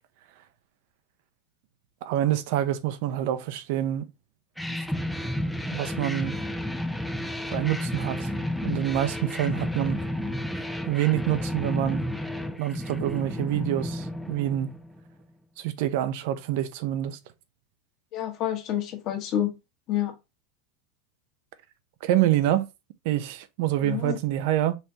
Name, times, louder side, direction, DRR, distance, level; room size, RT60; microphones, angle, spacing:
voice 1, 2.0-4.1 4.7-4.8 5.7-6.3 7.5-8.3 8.6-10.0 10.9-12.0 12.6-14.7 15.6-17.2 22.0-22.7 23.0-24.8, right 12 dB, 60° right, 0.8 m, -26 dB
sound 1, 4.6-15.1, left 1 dB, ahead, 0.5 m, -32 dB
voice 2, 18.1-19.5 19.9-20.1 23.8-24.2, left 11 dB, 40° left, 1.5 m, -28 dB
5.6 x 3.3 x 2.9 m
supercardioid pair, 135°, 0 cm